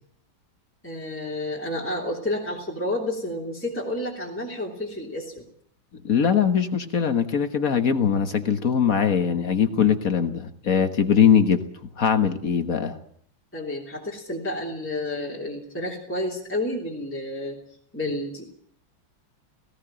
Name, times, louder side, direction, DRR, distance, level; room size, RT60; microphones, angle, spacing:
voice 1, 0.8-5.4 13.5-17.6 17.9-18.5, left 1 dB, 5° left, -3 dB, 3.2 m, -30 dB
voice 2, 6.0-11.6 12.0-13.0, left 7 dB, 45° left, 9 dB, 1.5 m, -21 dB
18.5 x 17.0 x 9.0 m, 0.64 s
omnidirectional pair, 2.2 m